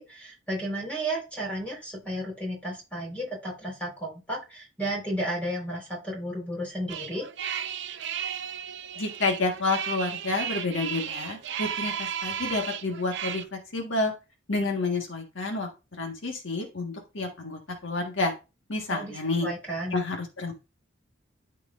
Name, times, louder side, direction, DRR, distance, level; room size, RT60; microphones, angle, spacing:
voice 1, 0.0-7.3 18.9-20.0, right 1 dB, 5° left, -2 dB, 4.2 m, -33 dB
sound 1, 6.9-13.4, right 8 dB, 60° right, 0.6 m, -34 dB
voice 2, 9.0-14.1 14.5-15.7 16.0-18.3 18.7-19.5 19.9-20.5, left 3 dB, 70° left, 2 dB, 1.5 m, -29 dB
13.0 x 4.7 x 2.5 m, 0.29 s
head